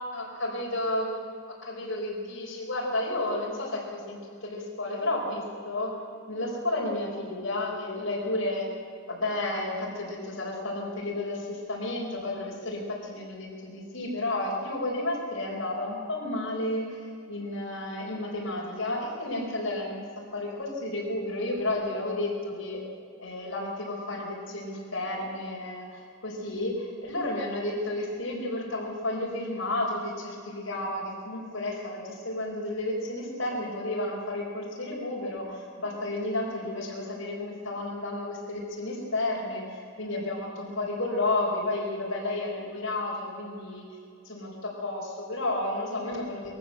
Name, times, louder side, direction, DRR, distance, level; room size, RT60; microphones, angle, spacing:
voice 1, 0.1-1.2 1.6-5.9 6.3-8.7 9.1-17.0 17.3-20.0 20.3-22.8 23.2-43.8 44.2-46.5, left 2 dB, 65° left, -3 dB, 4.7 m, -32 dB
22.0 x 15.0 x 7.8 m, 2.4 s
head